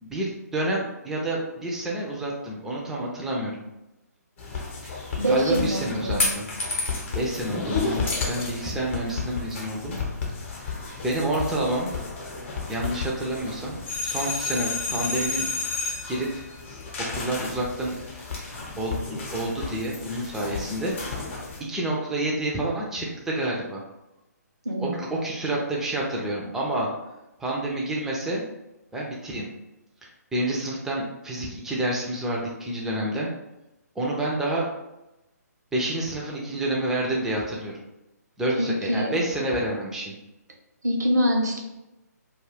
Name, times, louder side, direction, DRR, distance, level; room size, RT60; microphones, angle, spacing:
voice 1, 0.0-3.6 4.8-6.5 7.1-10.0 11.0-11.9 12.7-15.5 16.1-16.3 17.1-17.9 18.8-21.3 21.7-23.8 24.8-26.9 27.4-28.4 28.9-29.5 30.0-33.3 34.0-34.7 35.7-37.7 38.4-40.1, right 1 dB, 5° right, -3 dB, 0.4 m, -29 dB
sound 1, 4.4-21.6, left 4 dB, 45° left, 0.7 m, -32 dB
voice 2, 5.2-6.3 24.6-25.0 38.6-39.2 40.8-41.6, equal, 75° right, 1 dB, 0.8 m, -25 dB
2.3 x 2.3 x 3.3 m, 0.94 s
figure-of-eight pair, 135°, 9 cm